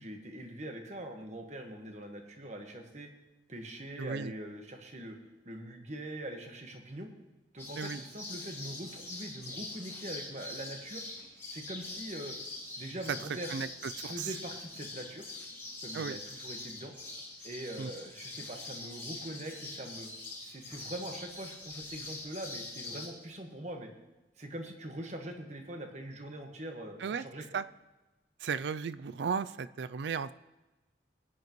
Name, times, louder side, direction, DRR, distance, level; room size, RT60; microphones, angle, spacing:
voice 1, 0.0-3.1 3.5-5.2 5.4-7.1 7.5-11.0 11.5-12.4 12.8-13.5 13.9-15.3 15.8-16.9 17.4-20.1 20.4-23.9 24.4-27.5, right 1 dB, 40° right, 4 dB, 1.4 m, -43 dB
voice 2, 4.0-4.3 7.8-8.0 13.5-13.7 14.0-14.3 15.9-16.2 17.8-17.9 27.0-27.2 27.5-27.6 28.4-30.3, right 6 dB, 75° right, 15 dB, 0.4 m, -35 dB
sound 1, 7.6-23.1, left 2 dB, 15° left, 2.0 m, -44 dB
19.5 x 9.4 x 3.1 m, 1.1 s
head